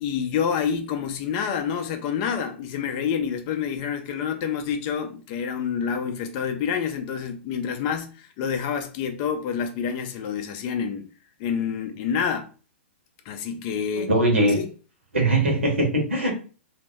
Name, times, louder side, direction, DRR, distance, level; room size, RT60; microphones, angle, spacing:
voice 1, 0.0-11.1 11.4-12.5 13.3-14.1 14.4-14.7, left 7 dB, 35° left, 0.5 m, -28 dB
voice 2, 13.9-14.6 15.1-16.3, right 1 dB, 80° right, 1.2 m, -21 dB
2.7 x 2.0 x 3.3 m
figure-of-eight pair, 110°, 7 cm